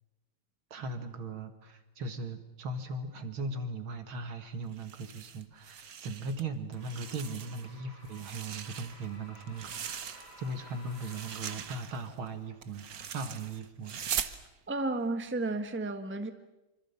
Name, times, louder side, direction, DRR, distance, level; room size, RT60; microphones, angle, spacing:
voice 1, 0.7-14.0, right 2 dB, 75° right, 8 dB, 2.7 m, -39 dB
Pull-meter, 4.7-6.4 6.7-7.7 8.1-10.5 10.9-14.4, right 8 dB, 50° right, 1.4 m, -41 dB
sound 1, 6.7-11.9, left 1 dB, 50° left, 6.7 m, -54 dB
voice 2, 14.7-16.3, right 2 dB, 5° right, 7 dB, 1.2 m, -32 dB
26.0 x 25.5 x 7.2 m, 0.98 s
omnidirectional pair, 2.3 m